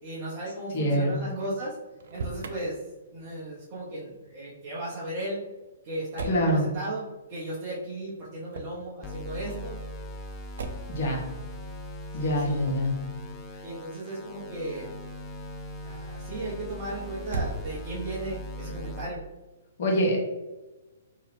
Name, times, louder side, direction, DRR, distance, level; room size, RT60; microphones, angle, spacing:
voice 1, 0.0-1.8 2.1-2.8 3.1-5.4 5.8-9.8 12.2-12.6 13.6-15.0 15.8-19.2, right 1 dB, 40° right, -7 dB, 0.7 m, -35 dB
voice 2, 0.7-1.1 6.3-6.6 10.9-11.2 12.1-12.9 19.8-20.2, equal, 55° left, -1 dB, 0.9 m, -25 dB
Motor vehicle (road), 1.9-2.6 6.1-6.5 8.5-8.9 10.6-11.0 12.6-13.0 17.2-18.1, right 3 dB, 65° right, 0.3 m, -36 dB
sound 1, 9.0-19.0, equal, 20° left, 0.5 m, -40 dB
2.8 x 2.3 x 3.2 m, 1.1 s
figure-of-eight pair, 125°, 0 cm